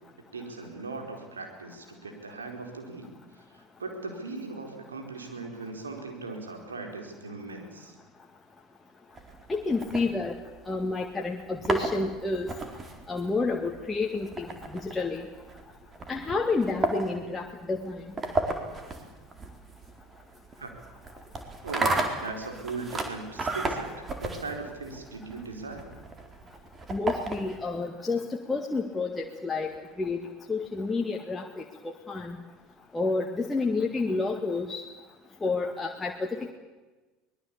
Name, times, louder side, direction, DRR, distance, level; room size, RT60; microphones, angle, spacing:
voice 1, 0.3-3.1 3.8-7.9 20.6-20.7 21.6-25.9, right 3 dB, 85° right, 3 dB, 4.5 m, -39 dB
sound 1, 9.2-10.8 11.4-27.7, right 3 dB, 25° right, 4.3 m, -34 dB
voice 2, 9.5-10.4 10.7-12.5 13.1-15.3 16.1-18.0 26.9-29.7 30.0-30.2 30.5-32.4 32.9-34.8 35.4-36.5, left 3 dB, 15° left, 1 dB, 2.2 m, -30 dB
24.0 x 21.0 x 8.6 m, 1.2 s
figure-of-eight pair, 70°, 0 cm